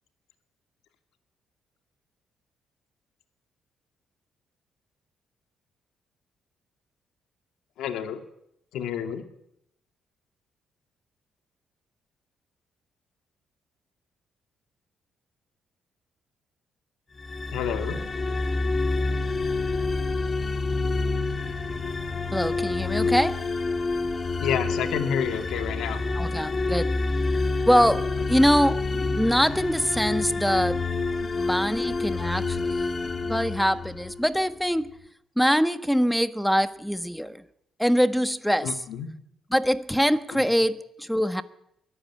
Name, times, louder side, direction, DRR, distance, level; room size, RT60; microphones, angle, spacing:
voice 1, 7.8-8.2 8.7-9.2 17.5-18.0 24.4-26.0 38.6-39.1, left 8 dB, 85° left, 8 dB, 2.3 m, -29 dB
sound 1, 17.2-34.3, left 3 dB, 35° left, 2.4 m, -28 dB
voice 2, 22.3-23.4 26.1-26.9 27.7-30.8 31.3-34.9 35.4-37.4 37.8-38.8 39.5-41.4, equal, ahead, 12 dB, 1.3 m, -24 dB
23.0 x 14.0 x 9.6 m, 0.77 s
cardioid pair, 90°, 0 cm